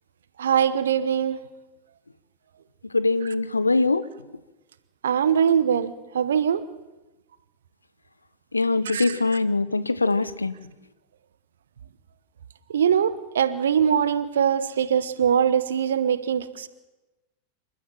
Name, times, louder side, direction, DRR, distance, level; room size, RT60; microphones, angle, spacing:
voice 1, 0.4-1.4 5.0-6.6 8.8-9.2 12.7-16.7, right 8 dB, 65° right, 15 dB, 1.0 m, -22 dB
voice 2, 2.9-4.0 8.5-10.5, left 3 dB, 80° left, 15 dB, 0.9 m, -22 dB
28.5 x 13.0 x 7.6 m, 1.1 s
figure-of-eight pair, 90°, 0 cm